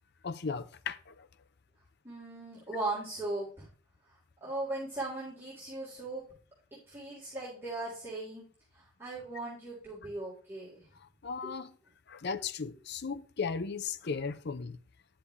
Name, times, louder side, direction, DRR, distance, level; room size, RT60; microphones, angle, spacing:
voice 1, 0.2-1.3 11.0-11.7 12.1-14.8, left 5 dB, 55° left, 0.6 m, -36 dB
voice 2, 2.0-3.7 4.1-6.2 6.9-8.4 8.7-10.9 11.4-11.5, right 2 dB, 10° right, 3.6 m, -38 dB
10.0 x 7.0 x 3.1 m
head